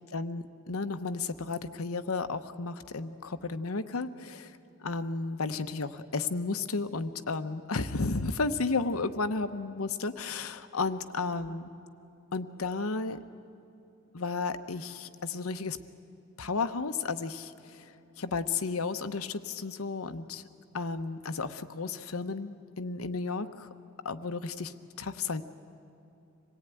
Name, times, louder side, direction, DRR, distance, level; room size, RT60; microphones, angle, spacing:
voice 1, 0.1-11.7 12.3-13.2 14.1-15.8 16.4-20.4 20.7-23.7 24.0-25.4, left 4 dB, 85° left, 10 dB, 0.9 m, -33 dB
25.5 x 18.0 x 9.2 m, 2.7 s
head